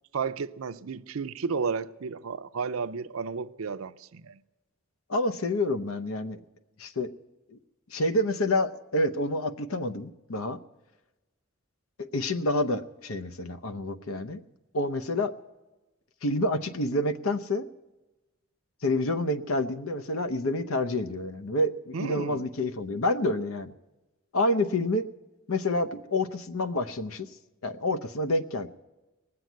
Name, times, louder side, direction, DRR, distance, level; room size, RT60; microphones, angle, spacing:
voice 1, 0.1-4.4 21.9-22.4, right 5 dB, 85° right, 0.5 m, -33 dB
voice 2, 5.1-6.4 6.8-7.1 7.5-7.6 7.9-10.6 12.0-14.4 14.7-15.3 16.2-17.7 18.8-23.7 24.3-25.0 25.5-27.3 27.6-28.7, left 1 dB, 85° left, 0.8 m, -28 dB
19.0 x 7.8 x 9.2 m
head